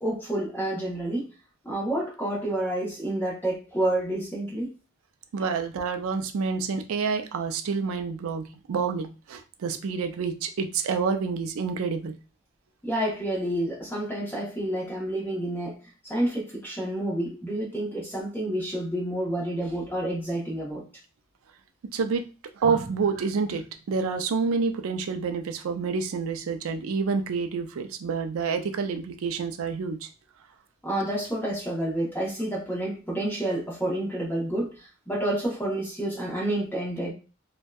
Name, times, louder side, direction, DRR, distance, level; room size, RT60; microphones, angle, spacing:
voice 1, 0.0-1.3 1.6-4.7 12.8-15.8 16.0-20.8 30.8-37.1, right 1 dB, 10° left, -4 dB, 0.8 m, -29 dB
voice 2, 5.3-12.1 21.9-22.3 22.6-30.1, right 5 dB, 75° right, 6 dB, 0.4 m, -28 dB
2.6 x 2.1 x 2.2 m, 0.34 s
head